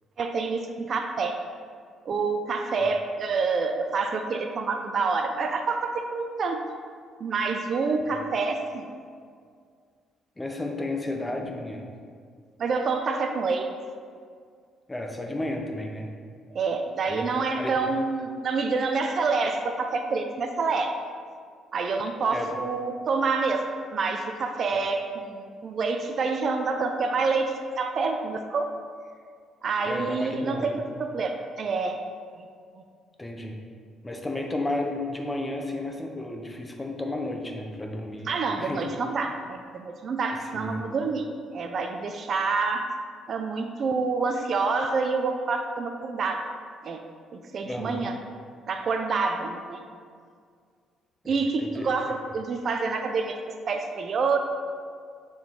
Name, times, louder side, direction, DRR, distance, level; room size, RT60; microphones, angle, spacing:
voice 1, 0.2-1.4 2.1-6.6 7.2-8.9 12.6-13.7 16.5-20.9 21.7-23.7 23.9-28.7 29.6-32.0 38.3-42.9 43.3-46.5 46.8-47.0 47.3-48.2 48.7-49.8 51.3-53.4 53.7-54.4, right 4 dB, 40° right, 5 dB, 0.3 m, -27 dB
voice 2, 10.4-11.9 14.9-16.1 17.1-17.9 22.3-22.5 29.8-30.9 33.2-33.6 34.0-38.9 40.5-40.8 47.6-48.0 51.2-51.9, left 1 dB, 10° left, 2 dB, 0.5 m, -33 dB
7.1 x 3.8 x 3.6 m, 2.1 s
cardioid pair, 155°, 0 cm